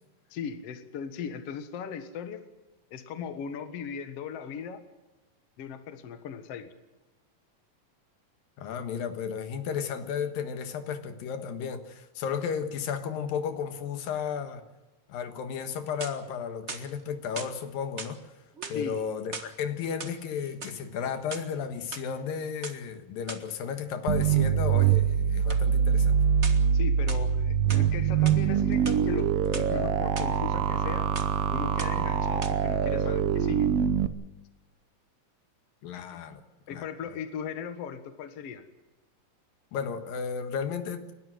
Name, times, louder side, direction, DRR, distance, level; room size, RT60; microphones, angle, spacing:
voice 1, 0.3-2.4 2.9-4.8 5.6-6.7 18.7-19.0 26.7-31.1 31.5-33.7 36.7-38.6, left 7 dB, 50° left, 8 dB, 2.2 m, -38 dB
voice 2, 8.6-14.6 15.1-18.3 18.7-26.2 35.8-36.4 36.7-36.9 39.7-41.1, left 7 dB, 85° left, 8 dB, 3.2 m, -33 dB
sound 1, 15.7-16.3 16.7-17.5 18.0-18.2 18.5-19.5 19.9-20.8 21.2-22.0 22.6-22.8 23.3-23.5 25.5-25.7 26.4-26.7 27.1-27.9 28.2-28.4 28.7-29.7 30.2-30.3 30.6-30.9 31.1-31.4 31.8-32.1 32.4-32.5, right 4 dB, 60° right, 0.7 m, -40 dB
sound 2, 24.1-34.1, right 8 dB, 75° right, 1.4 m, -24 dB
30.0 x 12.5 x 7.8 m, 1.1 s
omnidirectional pair, 4.0 m